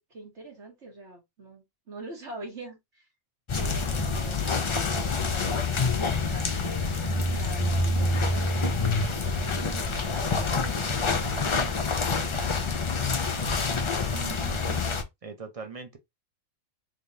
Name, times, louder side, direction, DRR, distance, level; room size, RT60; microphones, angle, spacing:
voice 1, 0.0-3.1 3.6-6.9 7.3-13.4, right 1 dB, 60° right, 1.8 m, -44 dB
sound 1, 3.5-15.0, left 3 dB, 50° left, 0.3 m, -27 dB
voice 2, 14.1-16.0, right 5 dB, 40° right, 0.6 m, -42 dB
3.5 x 3.3 x 2.7 m
omnidirectional pair, 1.4 m